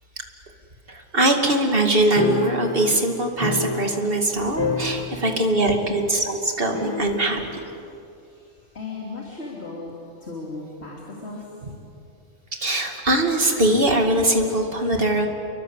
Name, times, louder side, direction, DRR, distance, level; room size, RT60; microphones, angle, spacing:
voice 1, 0.9-7.4 12.6-15.3, right 1 dB, 45° right, 3 dB, 2.7 m, -21 dB
sound 1, 2.2-4.3 4.5-5.6 5.8-5.9 6.7-7.5, left 2 dB, 20° left, 1.8 m, -29 dB
voice 2, 4.9-5.2 5.6-5.7 7.1-11.6, left 3 dB, 55° left, -3 dB, 3.7 m, -38 dB
29.5 x 23.0 x 8.3 m, 2.6 s
omnidirectional pair, 1.3 m